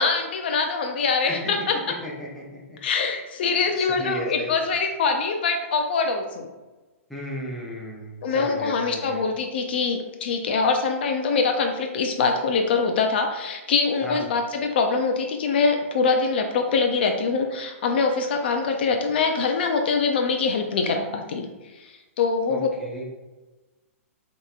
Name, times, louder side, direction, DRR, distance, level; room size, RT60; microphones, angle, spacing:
voice 1, 0.0-1.9 2.8-6.5 8.2-21.5 21.7-22.7, left 4 dB, 45° left, 4 dB, 0.4 m, -24 dB
voice 2, 2.0-2.8 3.4-4.6 7.1-9.2 14.0-14.2 22.5-23.0, equal, ahead, -6 dB, 0.6 m, -35 dB
5.5 x 2.9 x 2.3 m, 1.2 s
hypercardioid pair, 170°, 8 cm